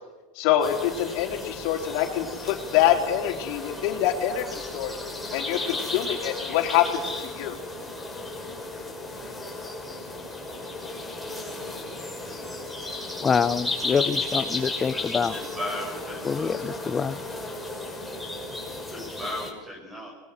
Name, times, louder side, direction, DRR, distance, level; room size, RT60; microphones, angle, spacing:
voice 1, 0.4-4.9 5.3-7.6, left 11 dB, 60° left, 4 dB, 3.8 m, -25 dB
sound 1, 0.6-19.5, left 2 dB, 5° left, 6.0 m, -34 dB
voice 2, 13.2-15.4 16.2-17.2, left 6 dB, 25° left, 15 dB, 0.7 m, -26 dB
voice 3, 15.3-16.5 18.9-20.1, left 1 dB, 15° right, 0 dB, 5.1 m, -36 dB
23.5 x 21.0 x 7.7 m, 1.2 s
hypercardioid pair, 110°, 0 cm